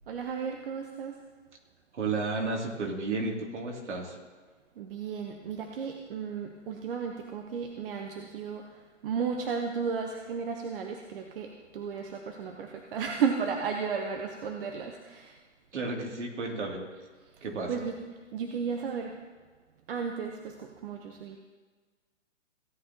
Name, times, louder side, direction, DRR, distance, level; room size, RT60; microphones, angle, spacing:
voice 1, 0.1-1.2 4.8-15.3 17.7-18.0 18.3-19.1 19.9-21.4, right 6 dB, 50° right, 2 dB, 1.1 m, -34 dB
voice 2, 1.9-4.2 15.7-16.8 17.4-17.7, right 3 dB, 70° right, -1 dB, 3.0 m, -32 dB
16.5 x 9.2 x 3.0 m, 1.4 s
hypercardioid pair, 135°, 37 cm